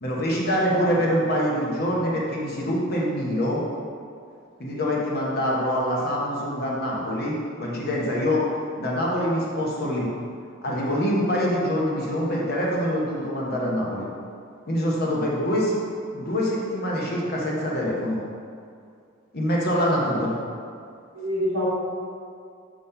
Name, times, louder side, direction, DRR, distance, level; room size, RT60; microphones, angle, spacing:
voice 1, 0.0-3.6 4.6-8.4 8.8-10.1 10.6-14.0 14.6-15.8 16.1-18.2 19.3-20.3, equal, 45° left, -4 dB, 1.1 m, -25 dB
voice 2, 21.1-21.7, left 1 dB, 60° right, -7 dB, 1.4 m, -28 dB
5.6 x 3.2 x 5.4 m, 2.3 s
head